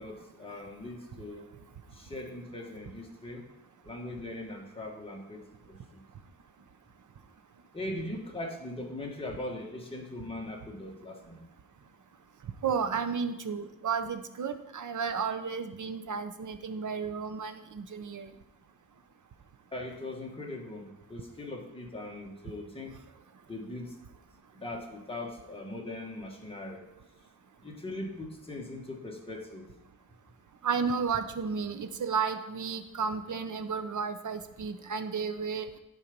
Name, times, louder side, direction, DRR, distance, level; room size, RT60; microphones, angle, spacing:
voice 1, 0.0-1.4 1.9-3.4 3.8-5.4 5.7-6.0 7.7-11.4 19.7-22.9 23.5-23.9 24.5-26.8 27.6-29.7, left 1 dB, 15° left, -1 dB, 1.6 m, -40 dB
voice 2, 12.6-18.3 30.6-35.7, right 6 dB, 55° right, 9 dB, 0.8 m, -32 dB
11.5 x 4.6 x 5.3 m, 0.93 s
wide cardioid pair, 135°, 35 cm